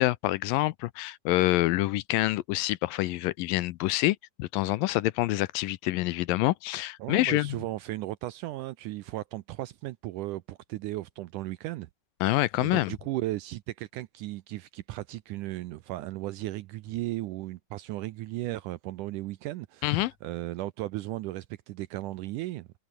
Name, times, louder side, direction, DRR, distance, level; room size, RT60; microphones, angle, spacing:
voice 1, 0.0-7.6 12.2-12.9 19.8-20.1, left 18 dB, 80° left, 2.2 m, -26 dB
voice 2, 7.0-11.9 12.6-22.7, right 17 dB, 85° right, 1.8 m, -36 dB
omnidirectional pair, 4.3 m